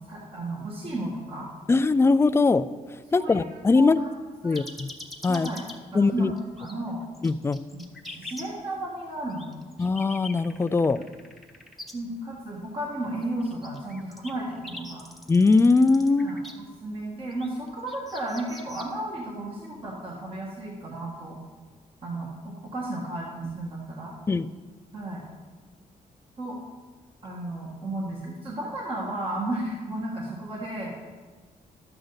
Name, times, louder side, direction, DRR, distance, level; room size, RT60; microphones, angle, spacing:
voice 1, 0.1-1.5 3.1-3.4 3.7-4.1 4.4-4.6 5.3-5.6 5.9-7.0 7.7-9.6 11.9-15.0 16.2-21.4 22.0-24.1 24.9-25.2 26.4-26.6 27.2-30.9, right 1 dB, 35° right, -4 dB, 1.7 m, -34 dB
voice 2, 1.7-2.7 3.1-4.0 4.4-4.9 5.2-5.5 5.9-6.3 7.2-7.6 9.8-11.0 15.3-16.3 24.3-24.5, left 3 dB, 15° left, 13 dB, 0.3 m, -21 dB
sound 1, 4.5-5.8 6.4-6.7 7.1-8.4 9.3-11.9 13.2-16.5 17.3-18.9, left 2 dB, ahead, 1.1 m, -42 dB
11.5 x 7.8 x 4.0 m, 1.4 s
cardioid pair, 105°, 15 cm